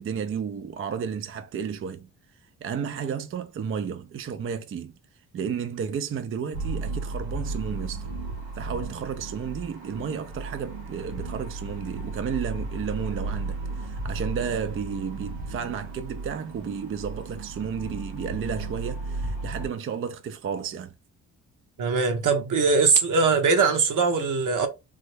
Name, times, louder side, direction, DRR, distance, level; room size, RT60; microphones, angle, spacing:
voice 1, 0.0-2.1 2.6-4.9 5.3-8.1 8.5-20.9, right 7 dB, 40° right, 0.4 m, -32 dB
sound 1, 6.5-19.7, right 3 dB, 85° right, 1.1 m, -34 dB
voice 2, 21.8-24.7, right 4 dB, 60° right, 1.0 m, -21 dB
3.4 x 2.0 x 3.3 m
supercardioid pair, 50°, 35 cm